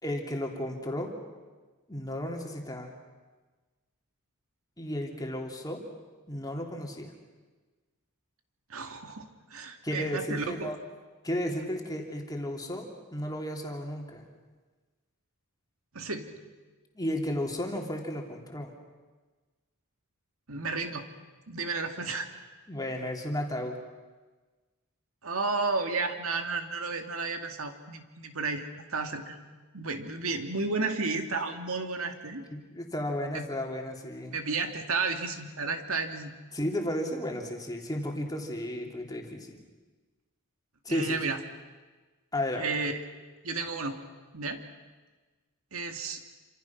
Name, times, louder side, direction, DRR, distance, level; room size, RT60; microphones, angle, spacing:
voice 1, 0.0-1.1 1.9-2.9 4.8-5.8 6.3-7.1 9.8-10.8 11.2-14.3 16.9-18.7 22.7-23.8 32.5-34.4 36.5-39.6 40.8-41.2 42.3-42.7, left 1 dB, 15° left, 1 dB, 3.0 m, -33 dB
voice 2, 8.7-10.7 15.9-16.4 20.5-21.1 21.5-22.3 25.2-28.6 28.9-29.4 29.7-32.5 33.3-33.4 34.3-36.4 40.9-41.4 42.6-43.0 43.4-44.0 44.3-44.6 45.7-46.2, right 4 dB, 70° right, 6 dB, 2.3 m, -32 dB
28.0 x 26.5 x 5.9 m, 1.3 s
head